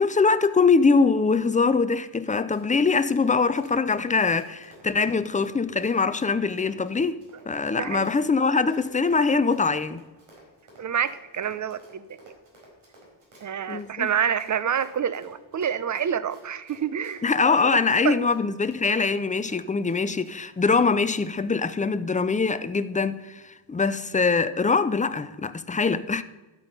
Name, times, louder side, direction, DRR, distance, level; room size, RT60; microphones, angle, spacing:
voice 1, 0.0-7.2 7.5-10.0 13.7-14.1 17.2-26.2, left 4 dB, 20° left, 0.3 m, -23 dB
Run, 2.2-20.4 20.7-20.8, right 1 dB, 75° right, 4.6 m, -53 dB
voice 2, 7.7-8.1 10.8-12.3 13.4-17.2 18.0-18.2, right 8 dB, 40° right, 0.6 m, -27 dB
12.5 x 8.2 x 5.3 m
wide cardioid pair, 135°, 48 cm